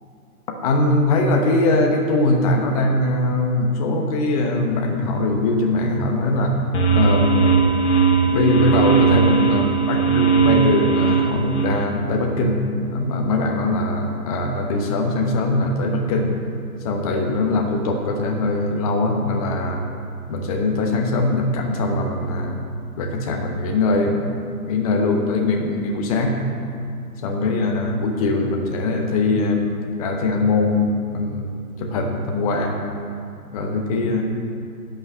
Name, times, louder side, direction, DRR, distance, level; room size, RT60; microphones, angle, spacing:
voice 1, 0.6-6.6 6.9-7.6 8.3-16.3 16.8-19.8 20.3-22.6 23.0-24.3 24.7-26.4 27.2-32.8 33.5-34.2, left 2 dB, 25° left, 1 dB, 1.0 m, -21 dB
sound 1, 6.7-11.8, right 6 dB, 45° left, 1.5 m, -18 dB
11.0 x 6.4 x 8.1 m, 2.4 s
figure-of-eight pair, 130°, 46 cm